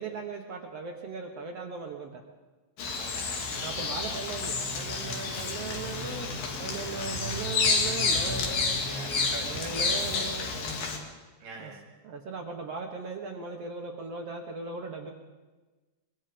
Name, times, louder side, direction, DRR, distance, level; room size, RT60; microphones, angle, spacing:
voice 1, 0.0-2.2 3.6-6.3 6.6-8.8 9.4-10.5 11.6-11.7 12.0-15.1, right 4 dB, 55° right, 2 dB, 2.1 m, -38 dB
Bird vocalization bird call bird song, 2.8-11.0, left 4 dB, 85° left, 4.0 m, -30 dB
voice 2, 3.0-3.8 5.4-5.5 6.9-7.2 8.9-10.8 11.4-11.8, right 3 dB, 75° right, 2 dB, 4.6 m, -46 dB
23.0 x 22.5 x 5.2 m, 1.3 s
omnidirectional pair, 3.9 m